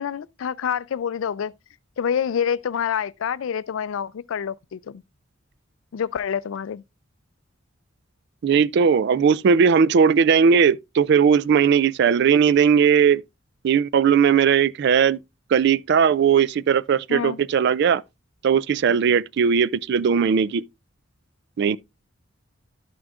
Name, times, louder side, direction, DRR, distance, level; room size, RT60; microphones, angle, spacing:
voice 1, 0.0-1.5 2.0-5.0 5.9-6.8 17.1-17.4, left 8 dB, 75° left, 0.4 m, -27 dB
voice 2, 8.4-13.2 13.6-15.2 15.5-18.0 18.4-20.6 21.6-21.8, right 7 dB, 55° right, 0.3 m, -18 dB
12.5 x 6.1 x 2.4 m
head